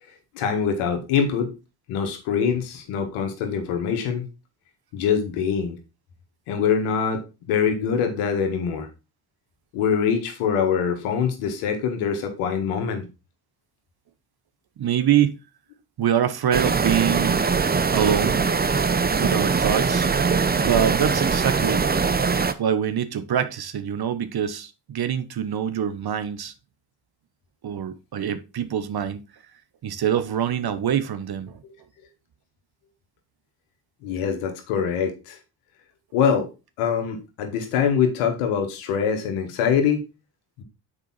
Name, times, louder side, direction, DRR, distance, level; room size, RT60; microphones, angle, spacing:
voice 1, 0.3-1.5 1.9-4.2 4.9-5.8 6.5-7.2 7.5-8.9 9.7-13.1 34.0-35.4 36.1-36.5 36.8-40.0 40.6-40.7, left 7 dB, 85° left, 1.7 m, -24 dB
voice 2, 14.8-15.4 16.0-17.5 17.9-18.4 19.2-20.1 20.6-21.8 22.6-26.5 27.6-29.2 29.8-31.6, right 9 dB, 50° right, 1.0 m, -24 dB
sound 1, 16.5-22.5, right 5 dB, 20° right, 0.7 m, -22 dB
6.8 x 5.0 x 4.2 m
supercardioid pair, 50°, 50 cm